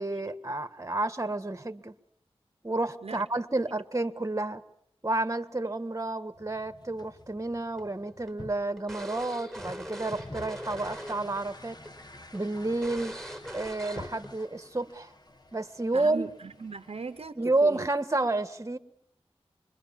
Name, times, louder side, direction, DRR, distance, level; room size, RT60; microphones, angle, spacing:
voice 1, 0.0-1.9 2.6-4.6 5.0-11.8 12.3-13.2 13.5-15.1 15.5-16.3 17.4-18.8, right 2 dB, 30° right, 10 dB, 1.5 m, -30 dB
sound 1, 6.3-17.3, left 2 dB, 40° left, 1.7 m, -49 dB
sound 2, 7.8-11.4 11.7-11.9 12.3-12.4 12.8-14.3, equal, 5° left, 5.1 m, -41 dB
voice 2, 15.9-17.9, right 4 dB, 75° right, 11 dB, 0.9 m, -39 dB
25.5 x 22.5 x 7.3 m, 0.72 s
wide cardioid pair, 55°, 11 cm